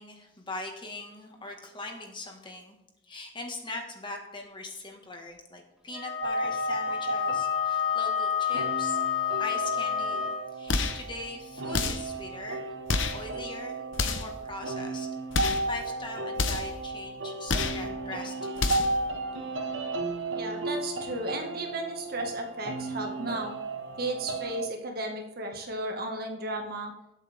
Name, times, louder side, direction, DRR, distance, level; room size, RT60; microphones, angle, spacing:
voice 1, 0.0-2.8 3.0-9.0 9.4-10.3 10.5-12.7 13.1-15.1 15.3-18.9, left 2 dB, 25° left, 2 dB, 1.8 m, -41 dB
Wind instrument woodwind instrument, 5.9-10.5, left 9 dB, 5° right, 2.4 m, -29 dB
sound 1, 6.2-24.7, right 2 dB, 70° right, 1.4 m, -34 dB
sound 2, 10.7-11.1 11.7-12.1 12.9-13.2 13.9-14.4 15.3-15.7 16.4-16.8 17.5-17.9 18.6-19.0, left 4 dB, 75° left, 1.1 m, -29 dB
voice 2, 20.3-23.5 24.0-26.9, right 1 dB, 50° right, 2 dB, 1.9 m, -34 dB
20.0 x 8.3 x 3.6 m, 0.89 s
head